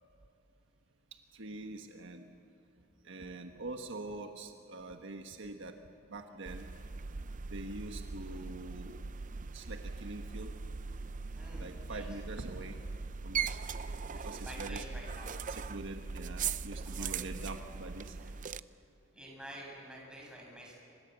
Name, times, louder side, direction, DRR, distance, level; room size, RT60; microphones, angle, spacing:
voice 1, 1.3-2.2 3.0-5.8 6.1-6.7 7.5-9.0 9.5-10.5 11.6-12.8 13.2-13.6 14.2-14.8 15.5-18.2, right 2 dB, 65° right, 4 dB, 1.4 m, -44 dB
sound 1, 6.5-18.6, right 5 dB, 40° right, 0.6 m, -40 dB
voice 2, 11.3-12.1 14.1-15.4 17.0-17.3 18.2-18.3 18.7-18.8 19.1-20.7, equal, 5° right, -2 dB, 7.6 m, -49 dB
27.5 x 25.5 x 8.1 m, 2.6 s
head